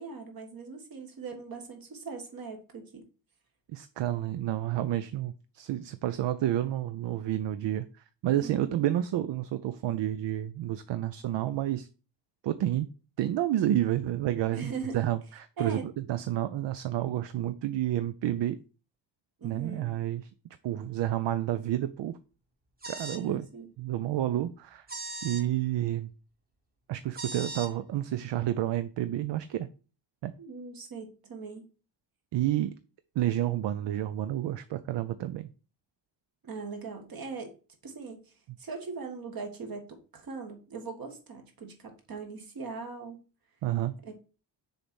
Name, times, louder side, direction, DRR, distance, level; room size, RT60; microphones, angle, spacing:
voice 1, 0.0-3.1 8.4-8.8 14.5-15.1 15.6-15.8 19.4-19.9 23.1-23.7 30.4-31.6 36.4-37.5 37.8-38.3 38.6-43.2 44.0-44.1, right 4 dB, 50° right, 1.7 m, -40 dB
voice 2, 3.7-7.9 8.2-11.9 12.4-12.9 13.2-18.6 19.4-20.3 20.6-22.2 22.9-23.5 23.8-24.9 25.2-26.1 26.9-29.7 30.2-30.3 32.3-32.7 33.2-35.5 43.6-43.9, right 12 dB, 70° right, 0.6 m, -30 dB
sound 1, 22.8-23.2 24.9-25.4 27.1-27.7, right 2 dB, 20° right, 1.3 m, -38 dB
6.7 x 4.0 x 6.1 m
wide cardioid pair, 165°, 45 cm